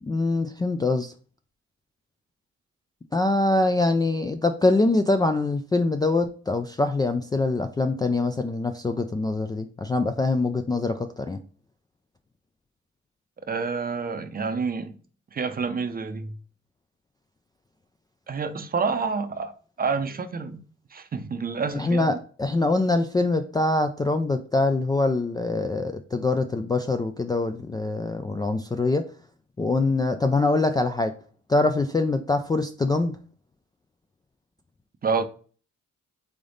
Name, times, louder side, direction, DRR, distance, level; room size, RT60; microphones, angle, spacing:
voice 1, 0.0-1.1 3.1-11.4 21.7-29.0 29.6-31.1 31.5-33.2, left 2 dB, 15° left, 0.3 m, -24 dB
voice 2, 13.5-15.0 15.3-16.4 18.3-20.6 20.9-22.2 35.0-35.2, right 5 dB, 30° right, 0.6 m, -28 dB
3.7 x 3.4 x 3.8 m
cardioid pair, 90°, 30 cm